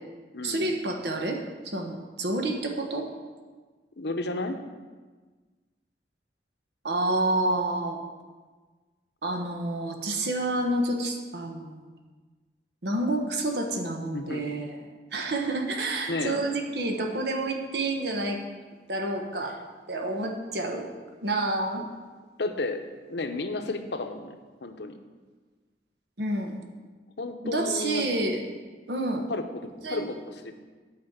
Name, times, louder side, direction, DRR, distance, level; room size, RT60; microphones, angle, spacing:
voice 1, 0.4-3.1 6.8-8.0 9.2-11.9 12.8-14.8 15.1-18.4 18.9-19.6 19.9-20.9 21.2-21.8 26.2-26.6 27.4-28.4 28.9-29.3 29.8-30.1, right 2 dB, 70° right, 3 dB, 1.2 m, -29 dB
voice 2, 4.0-4.6 14.1-14.4 16.1-16.4 21.8-21.9 22.4-22.8 23.1-24.3 24.6-25.0 27.2-28.1 29.3-29.4 29.9-30.6, left 2 dB, 70° left, 7 dB, 0.8 m, -32 dB
8.8 x 5.1 x 7.9 m, 1.4 s
head